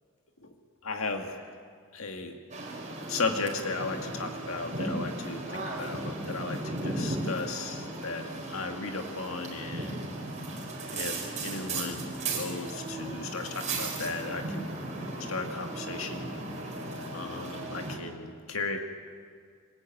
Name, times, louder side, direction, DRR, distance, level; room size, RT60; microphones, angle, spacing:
voice 1, 0.8-1.6 1.9-2.4 3.1-10.0 10.9-14.8 15.3-16.3 17.1-18.8, left 3 dB, 70° left, 4 dB, 2.0 m, -35 dB
sound 1, 2.5-18.0, right 2 dB, 35° right, 4.8 m, -36 dB
26.0 x 17.5 x 9.2 m, 2.1 s
head